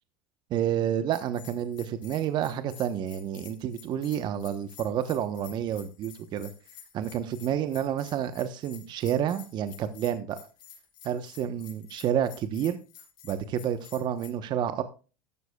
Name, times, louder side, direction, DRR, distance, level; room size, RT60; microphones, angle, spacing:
voice 1, 0.5-6.5 6.9-10.4 11.0-12.8 13.2-14.8, right 9 dB, 45° right, 10 dB, 1.0 m, -29 dB
Bell, 1.1-14.3, left 10 dB, 45° left, 4.0 m, -50 dB
13.0 x 12.5 x 2.3 m, 0.34 s
supercardioid pair, 115°, 11 cm